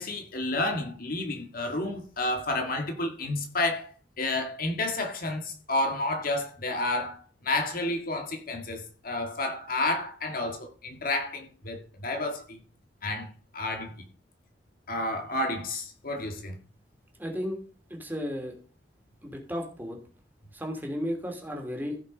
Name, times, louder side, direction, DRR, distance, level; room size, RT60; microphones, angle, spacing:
voice 1, 0.0-12.6 13.0-14.1 14.9-16.5, left 2 dB, 50° left, 2.0 m, -31 dB
voice 2, 17.2-17.6 17.9-18.5 19.2-20.0 20.5-22.0, equal, 10° right, 2.8 m, -34 dB
15.0 x 5.8 x 5.3 m
head